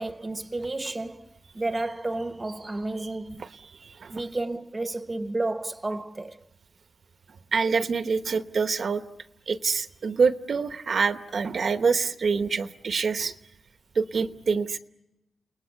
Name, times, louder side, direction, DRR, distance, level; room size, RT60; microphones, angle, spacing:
voice 1, 0.0-3.4 4.1-6.4, right 2 dB, 20° right, 0.9 m, -31 dB
voice 2, 3.8-4.2 7.5-9.0 9.5-13.3 13.9-14.8, right 5 dB, 60° right, 1.0 m, -26 dB
29.5 x 20.0 x 9.7 m
wide cardioid pair, 140°, 0 cm